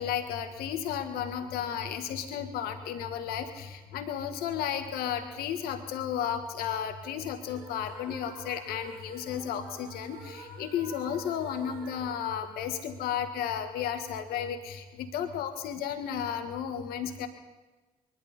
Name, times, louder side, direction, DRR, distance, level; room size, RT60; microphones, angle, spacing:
voice 1, 0.0-17.3, left 9 dB, 70° left, 8 dB, 1.6 m, -33 dB
sound 1, 7.4-13.5, right 2 dB, 70° right, 4.3 m, -49 dB
22.5 x 11.5 x 5.5 m, 1.2 s
hypercardioid pair, 45°, 16 cm